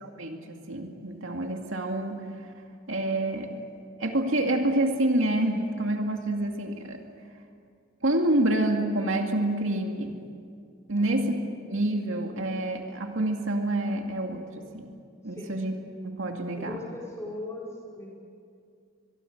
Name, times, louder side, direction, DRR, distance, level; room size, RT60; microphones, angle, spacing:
voice 1, 0.0-2.5 2.9-3.6 4.0-7.0 8.0-10.2 10.9-11.3 11.7-14.9 15.2-15.7 16.0-16.8, right 1 dB, 70° right, 3 dB, 2.3 m, -27 dB
voice 2, 10.9-11.3 15.3-15.6 16.5-18.1, left 2 dB, 15° left, -4 dB, 4.8 m, -39 dB
23.5 x 23.5 x 8.1 m, 2.4 s
head